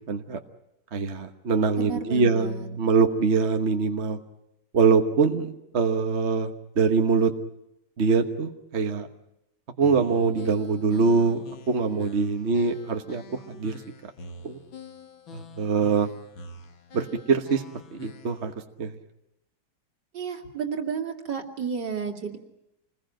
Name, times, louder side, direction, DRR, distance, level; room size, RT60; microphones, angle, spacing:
voice 1, 0.1-0.4 0.9-4.2 4.7-7.3 8.0-9.1 9.8-13.2 13.5-14.1 14.4-14.6 15.3-16.1 16.9-17.6 17.9-18.5 18.8-18.9, right 4 dB, 40° right, 6 dB, 1.3 m, -23 dB
voice 2, 1.7-2.7 20.1-22.4, right 6 dB, 65° right, 4 dB, 3.0 m, -32 dB
sound 1, 9.8-18.5, left 4 dB, 90° left, 2.5 m, -46 dB
28.0 x 21.0 x 9.0 m, 0.87 s
omnidirectional pair, 2.1 m